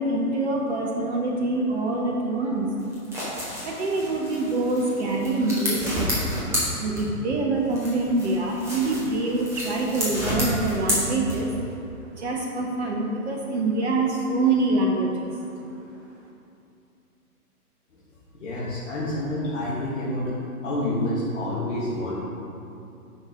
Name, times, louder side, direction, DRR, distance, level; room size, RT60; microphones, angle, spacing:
voice 1, 0.0-2.7 3.6-6.1 6.7-11.5 12.1-15.5, right 2 dB, 45° right, -1 dB, 1.0 m, -25 dB
sound 1, 2.8-7.4 7.7-11.7, equal, 5° right, 1.2 m, -30 dB
voice 2, 18.4-20.4 20.6-22.2, left 1 dB, 50° left, -8 dB, 1.6 m, -28 dB
9.6 x 5.9 x 3.5 m, 2.7 s
figure-of-eight pair, 125°, 46 cm